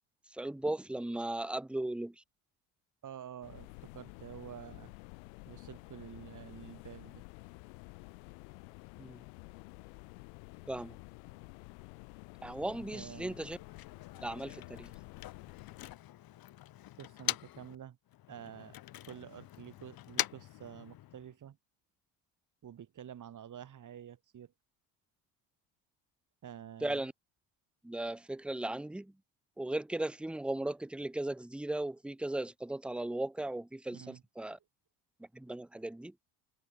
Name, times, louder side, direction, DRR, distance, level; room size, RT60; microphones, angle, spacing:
voice 1, 0.3-2.2 9.0-9.2 10.7-11.0 12.4-13.6 14.1-14.9 26.8-27.1 27.8-29.1 29.6-34.6 35.2-36.1, right 1 dB, ahead, 0.7 m, -37 dB
voice 2, 3.0-4.9 5.5-7.2 12.9-13.4 17.0-18.0 18.3-18.8 19.0-21.6 22.6-24.5 26.4-27.0 33.9-34.2, right 9 dB, 45° right, 2.8 m, -49 dB
sound 1, 3.4-16.0, left 40 dB or more, 80° left, 1.2 m, -51 dB
Motor vehicle (road), 13.3-17.8 18.1-21.3, left 14 dB, 55° left, 1.4 m, -42 dB
supercardioid pair, 80°, 43 cm